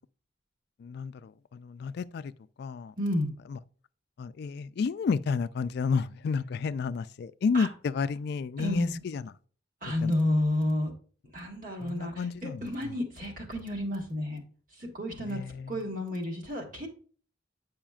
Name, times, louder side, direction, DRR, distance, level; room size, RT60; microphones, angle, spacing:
voice 1, 0.8-2.3 2.6-2.9 3.5-3.6 4.2-9.3 10.0-10.1 11.8-12.9 15.3-15.7, left 5 dB, 55° left, 0.3 m, -31 dB
voice 2, 3.0-3.3 7.5-7.7 8.6-9.0 9.8-10.9 11.3-14.4 14.7-15.4 15.7-16.9, left 1 dB, 45° right, 1.5 m, -31 dB
8.7 x 5.0 x 2.4 m
head